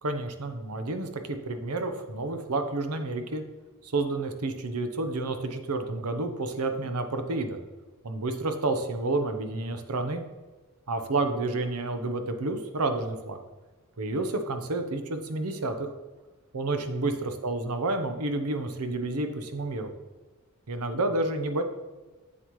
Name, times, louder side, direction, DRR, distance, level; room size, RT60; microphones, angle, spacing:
voice 1, 0.0-3.4 3.8-7.6 8.0-10.2 10.9-13.4 14.0-15.9 16.5-19.9 20.7-21.6, right 2 dB, 85° right, 7 dB, 0.9 m, -30 dB
8.0 x 7.8 x 3.1 m, 1.2 s
head